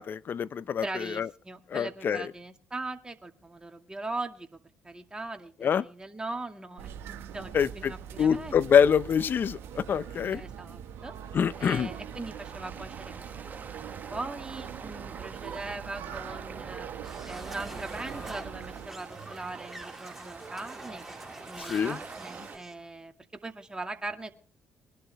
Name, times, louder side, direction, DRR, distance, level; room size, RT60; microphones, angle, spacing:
voice 1, 0.0-1.3 1.7-2.3 5.6-5.9 7.5-7.9 8.2-10.4 11.3-11.9 21.6-22.0, left 7 dB, 55° left, 0.7 m, -25 dB
voice 2, 0.8-8.5 10.3-11.1 11.6-13.2 13.9-16.9 17.3-21.0 21.5-24.3, right 2 dB, 20° right, 2.2 m, -40 dB
sound 1, 6.8-18.9, right 9 dB, 75° right, 1.7 m, -43 dB
sound 2, 11.5-22.6, right 5 dB, 45° right, 1.5 m, -45 dB
sound 3, 17.0-22.8, right 1 dB, ahead, 4.1 m, -45 dB
22.0 x 11.5 x 3.5 m
hypercardioid pair, 55°, 4 cm